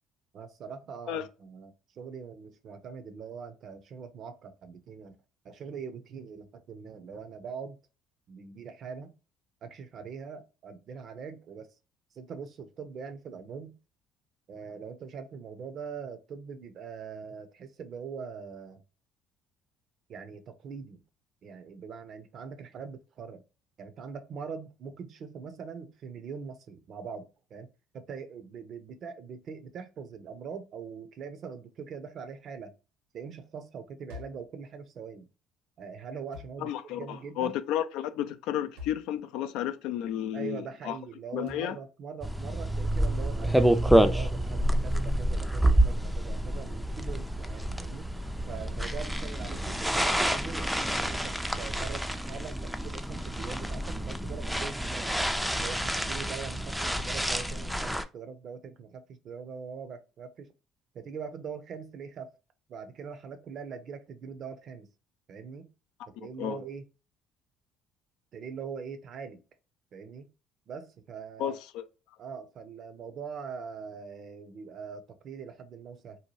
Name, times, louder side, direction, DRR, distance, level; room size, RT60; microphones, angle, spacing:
voice 1, 0.3-5.2 5.4-7.8 8.3-9.1 9.6-11.7 12.1-13.8 14.5-18.8 20.1-21.0 21.4-23.4 23.8-27.7 27.9-32.7 33.1-35.3 35.8-37.6 40.3-48.1 48.5-55.2 55.6-60.5 60.9-62.3 62.7-64.9 65.3-65.7 66.2-66.8 68.3-69.4 69.9-70.3 70.7-71.6 72.2-76.2, right 6 dB, 55° right, 0.6 m, -42 dB
sound 1, 34.1-34.5 36.3-36.6 38.8-39.1 41.5-41.7 43.6-43.9 45.7-45.9, left 6 dB, 85° right, 1.1 m, -46 dB
voice 2, 36.6-41.0 41.3-41.8 66.2-66.6 71.4-71.8, left 11 dB, 75° left, 0.3 m, -32 dB
sound 2, 42.2-58.0, right 1 dB, ahead, 0.4 m, -28 dB
2.7 x 2.2 x 3.0 m
supercardioid pair, 65°, 0 cm